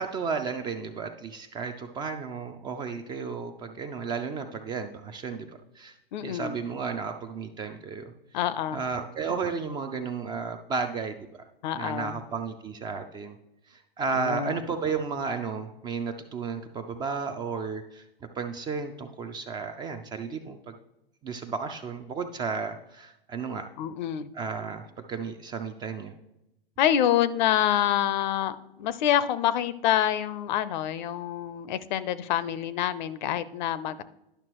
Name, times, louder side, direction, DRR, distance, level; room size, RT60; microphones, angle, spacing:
voice 1, 0.0-5.5 5.7-5.9 6.2-8.1 8.7-11.3 11.7-13.4 13.7-18.0 18.4-20.8 21.2-23.7 24.3-26.1, right 5 dB, 15° right, 6 dB, 0.3 m, -33 dB
voice 2, 6.1-6.6 8.3-8.8 11.6-12.2 14.1-14.6 23.8-24.3 26.8-34.0, left 11 dB, 50° left, 15 dB, 0.5 m, -27 dB
11.0 x 5.8 x 3.0 m, 0.87 s
hypercardioid pair, 115°, 29 cm